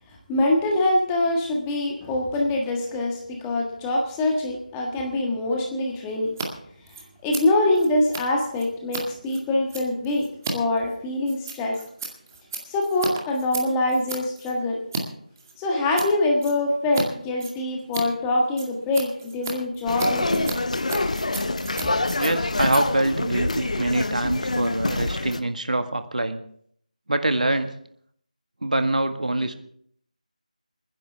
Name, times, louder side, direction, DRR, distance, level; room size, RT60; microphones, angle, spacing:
voice 1, 0.3-6.3 7.2-10.3 10.5-11.8 12.6-14.8 15.6-20.5, left 2 dB, 10° left, 0 dB, 1.5 m, -24 dB
Scissors, 6.2-6.5 6.7-15.0 15.3-16.1 16.4-17.0 17.3-24.1, right 3 dB, 25° right, 2.1 m, -35 dB
sound 1, 19.9-25.4, left 2 dB, 60° left, 0.9 m, -26 dB
voice 2, 22.2-26.4 27.1-27.7 28.6-29.5, right 2 dB, 70° right, 7 dB, 1.7 m, -24 dB
27.5 x 10.5 x 3.5 m, 0.64 s
figure-of-eight pair, 165°, 4 cm